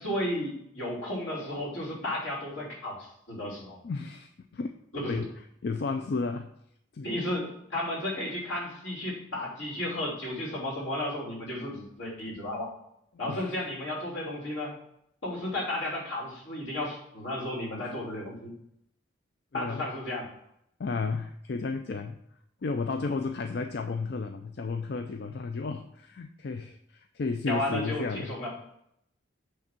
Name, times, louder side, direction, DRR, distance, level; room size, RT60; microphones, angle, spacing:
voice 1, 0.0-3.8 4.9-5.2 7.0-12.7 13.2-14.7 15.2-18.5 19.5-20.3 27.5-28.5, left 1 dB, 80° left, -4 dB, 3.2 m, -33 dB
voice 2, 3.8-4.8 5.1-5.3 5.6-6.5 6.9-7.1 13.3-13.4 17.8-17.9 19.5-19.9 20.8-22.2 22.6-28.3, left 4 dB, 55° left, 7 dB, 0.4 m, -33 dB
8.6 x 3.5 x 5.9 m, 0.75 s
head